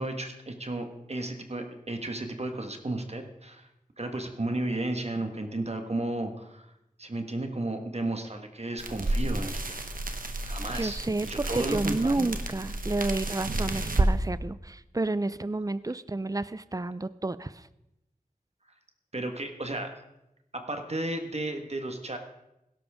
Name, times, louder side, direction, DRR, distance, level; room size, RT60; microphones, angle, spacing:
voice 1, 0.0-3.7 4.0-6.7 7.0-9.8 10.4-12.3 19.1-20.0 20.5-22.2, right 2 dB, 45° right, 5 dB, 1.5 m, -33 dB
sound 1, 8.8-14.1, right 2 dB, 75° right, 1.3 m, -31 dB
voice 2, 10.7-17.7, right 2 dB, 25° right, 16 dB, 0.5 m, -30 dB
16.5 x 12.0 x 3.6 m, 0.89 s
wide cardioid pair, 55°, 15 cm